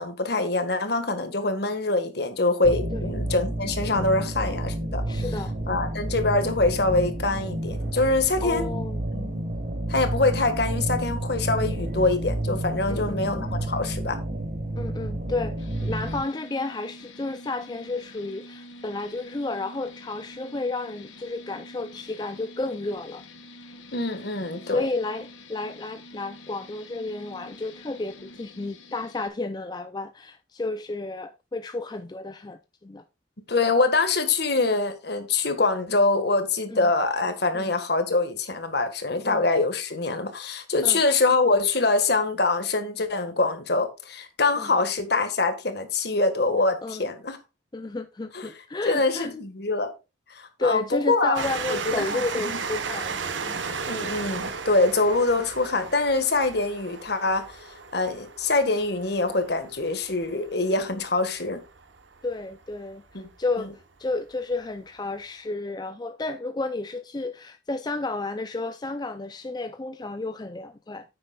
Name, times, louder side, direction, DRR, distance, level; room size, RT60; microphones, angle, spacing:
voice 1, 0.0-5.2 5.7-8.7 9.1-9.3 9.9-14.2 23.9-24.9 33.5-47.4 48.3-48.5 48.8-49.9 50.3-52.6 53.9-57.7 57.9-61.6 63.1-63.3 63.6-63.7, left 3 dB, 55° left, 1.6 m, -24 dB
sound 1, 2.6-16.2, right 1 dB, 45° right, 1.6 m, -30 dB
voice 2, 5.1-5.5 8.4-9.0 11.6-11.7 12.9-13.3 14.8-23.2 24.6-33.0 36.7-36.9 37.5-37.7 39.3-39.5 40.8-41.0 44.6-44.7 46.8-47.1 47.7-49.3 50.6-53.6 62.2-63.7 64.0-71.0, left 3 dB, 20° left, 0.4 m, -32 dB
sound 2, 15.6-29.3, left 1 dB, 80° left, 1.6 m, -46 dB
Train, 51.3-62.5 63.2-63.3 63.6-63.7, right 5 dB, 75° right, 1.1 m, -35 dB
9.8 x 8.6 x 2.3 m
head